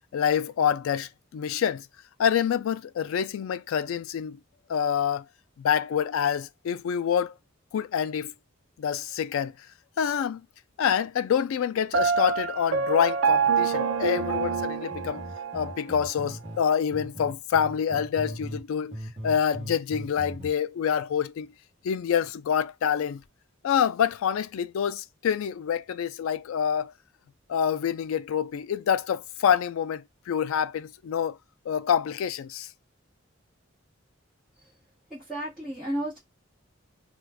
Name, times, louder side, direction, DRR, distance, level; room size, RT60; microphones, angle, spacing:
voice 1, 0.1-1.8 2.2-4.4 4.7-5.2 5.6-7.4 7.7-8.3 8.8-9.5 10.0-10.4 10.8-15.2 15.5-19.0 19.2-21.5 21.8-23.2 23.6-26.9 27.5-31.4 31.7-32.7, left 8 dB, 80° left, 0.3 m, -26 dB
Piano, 11.9-15.8, right 6 dB, 70° right, 0.4 m, -26 dB
sound 1, 14.0-16.6 16.9-18.7 18.9-20.5, equal, 30° right, 0.9 m, -39 dB
voice 2, 35.1-36.2, right 1 dB, 5° left, 1.1 m, -32 dB
2.4 x 2.4 x 3.4 m
head